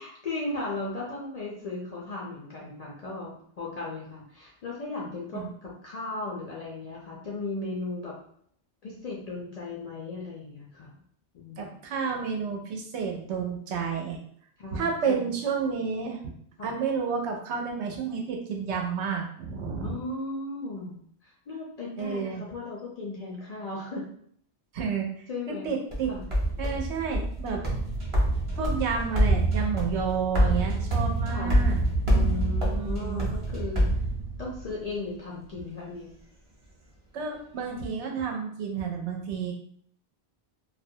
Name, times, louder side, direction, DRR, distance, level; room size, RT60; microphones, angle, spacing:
voice 1, 0.0-8.1 8.8-11.0 11.3-11.8 14.6-15.3 16.6-16.7 19.8-24.1 25.3-25.7 26.1-26.3 31.3-31.7 32.1-33.9 34.4-36.1 37.5-37.6, left 2 dB, 55° left, -4 dB, 0.4 m, -36 dB
voice 2, 11.6-14.2 14.7-16.2 16.6-20.0 22.0-22.4 24.7-26.1 26.6-27.6 28.6-31.8 32.7-33.3 37.1-39.5, right 6 dB, 90° right, 2 dB, 0.9 m, -30 dB
sound 1, 25.9-34.7, right 1 dB, 35° right, 0.6 m, -26 dB
2.3 x 2.1 x 2.6 m, 0.62 s
omnidirectional pair, 1.1 m